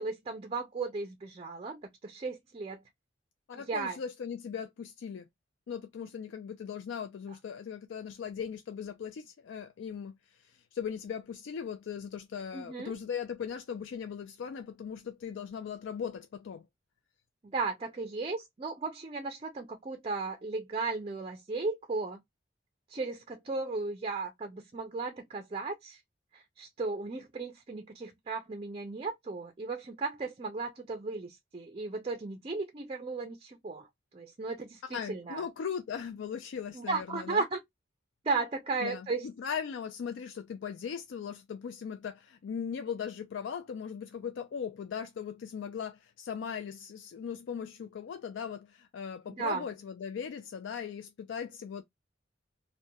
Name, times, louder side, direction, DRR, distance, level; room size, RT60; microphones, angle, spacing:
voice 1, 0.0-2.8 3.6-4.0 12.5-12.9 17.5-22.2 22.9-26.0 26.3-33.9 34.1-34.8 35.1-35.4 36.7-37.6 38.2-39.3 49.3-49.7, right 3 dB, 30° right, 0.4 m, -35 dB
voice 2, 3.5-5.3 5.7-16.7 34.9-37.4 38.8-51.8, left 7 dB, 70° left, 0.3 m, -39 dB
2.8 x 2.1 x 2.2 m
head